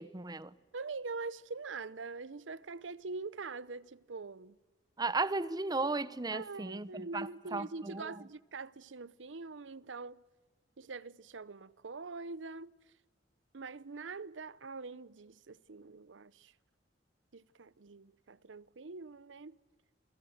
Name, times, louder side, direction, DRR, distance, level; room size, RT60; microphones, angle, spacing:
voice 1, 0.0-0.5 5.0-8.1, right 3 dB, 20° right, 0.8 m, -35 dB
voice 2, 0.7-4.6 6.3-10.2 10.8-12.7 13.5-16.5 17.3-19.6, right 4 dB, 85° right, 0.8 m, -44 dB
27.5 x 23.0 x 7.9 m
head